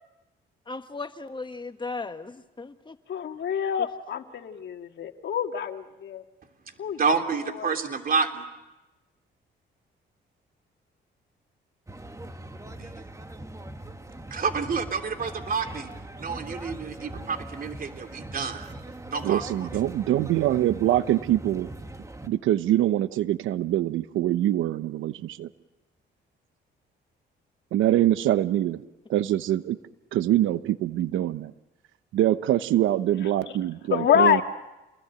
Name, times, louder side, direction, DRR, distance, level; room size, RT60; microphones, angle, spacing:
voice 1, 0.7-3.0 3.8-3.9, left 3 dB, 25° left, 9 dB, 1.5 m, -36 dB
voice 2, 3.1-6.2 6.8-7.0 7.6-7.7 33.9-34.4, left 8 dB, 65° left, 6 dB, 2.0 m, -26 dB
voice 3, 7.0-8.5 12.8-13.1 14.3-15.9 16.2-18.7 19.1-19.7, right 5 dB, 45° right, 5 dB, 3.3 m, -29 dB
sound 1, 11.9-22.3, right 1 dB, 15° right, 1.8 m, -41 dB
voice 4, 19.2-21.7 22.2-25.5 27.7-28.8 29.1-29.8 30.1-31.5 32.1-34.4, right 13 dB, 85° right, 13 dB, 1.0 m, -24 dB
28.0 x 21.0 x 9.1 m, 1.0 s
cardioid pair, 90°, 20 cm